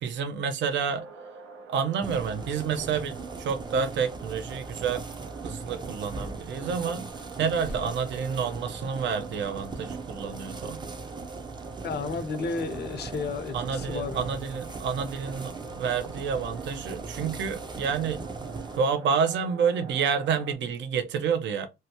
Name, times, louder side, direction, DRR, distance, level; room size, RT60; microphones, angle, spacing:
voice 1, 0.0-1.0 1.7-5.0 5.4-7.1 7.4-10.8 13.5-18.3 18.8-21.7, right 6 dB, 65° right, 0.6 m, -29 dB
sound 1, 0.8-20.6, right 4 dB, 90° right, 0.9 m, -46 dB
sound 2, 2.0-18.8, right 3 dB, 20° right, 0.5 m, -39 dB
voice 2, 11.8-14.5, left 4 dB, 55° left, 0.6 m, -33 dB
2.7 x 2.2 x 2.8 m
cardioid pair, 90°, 20 cm